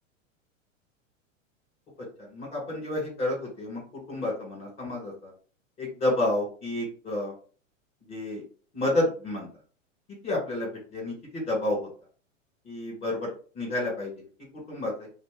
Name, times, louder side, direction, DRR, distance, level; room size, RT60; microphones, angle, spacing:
voice 1, 2.0-5.3 5.8-7.3 8.1-8.4 8.7-9.5 10.1-11.9 12.6-13.3 13.5-14.3 14.5-15.1, left 1 dB, 25° left, -2 dB, 1.4 m, -30 dB
2.5 x 2.2 x 3.5 m, 0.40 s
hypercardioid pair, 105°, 39 cm